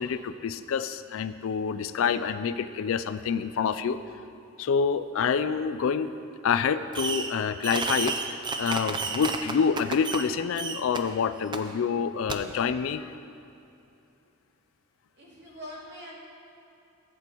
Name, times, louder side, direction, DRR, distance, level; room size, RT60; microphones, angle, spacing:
voice 1, 0.0-4.0 4.6-6.1 6.4-8.2 8.6-13.1, left 6 dB, 65° left, 12 dB, 0.3 m, -27 dB
Fireworks, 6.9-7.4 7.6-10.3 10.6-11.0 11.5-11.6 12.3-12.4, right 4 dB, 20° right, 0.4 m, -31 dB
voice 2, 15.1-16.1, equal, 55° right, -5 dB, 2.4 m, -43 dB
15.0 x 7.8 x 3.0 m, 2.8 s
head